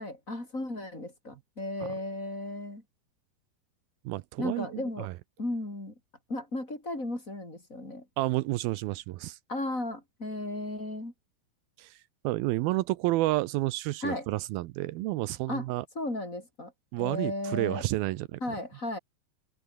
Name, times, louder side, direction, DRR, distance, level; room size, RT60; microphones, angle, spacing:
voice 1, 0.0-2.8 4.4-5.1 5.4-5.9 6.3-8.1 9.5-11.1 14.0-14.3 15.5-15.7 16.0-16.7 17.0-17.8 18.4-19.0, left 1 dB, 20° left, 5.8 m, -35 dB
voice 2, 4.1-5.1 8.2-9.4 11.8-12.0 12.2-15.9 16.9-18.4, right 18 dB, 85° right, 2.5 m, -30 dB
omnidirectional pair, 4.5 m